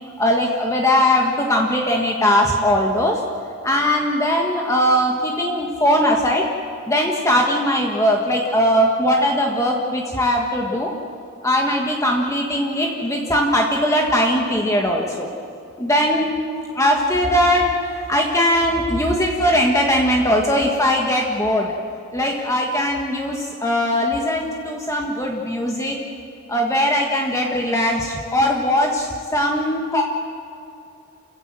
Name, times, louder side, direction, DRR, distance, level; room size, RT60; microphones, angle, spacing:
voice 1, 0.2-3.2 3.6-6.5 6.9-10.9 11.4-15.3 15.8-16.4 16.7-21.7 22.1-26.0 26.5-30.0, equal, 15° left, 0 dB, 1.6 m, -20 dB
29.5 x 16.0 x 7.8 m, 2.6 s
head